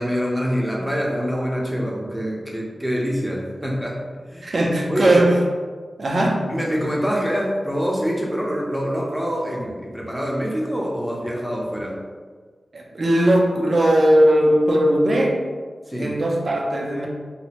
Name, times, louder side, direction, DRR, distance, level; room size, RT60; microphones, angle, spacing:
voice 1, 0.0-4.0 4.3-4.5 4.9-5.2 6.5-12.0 15.9-16.1, equal, 5° right, -3 dB, 0.7 m, -25 dB
voice 2, 4.4-5.4 6.0-6.5 12.7-15.4 16.0-17.1, right 1 dB, 60° right, -1 dB, 0.5 m, -18 dB
2.6 x 2.1 x 2.8 m, 1.5 s
cardioid pair, 50°, 0 cm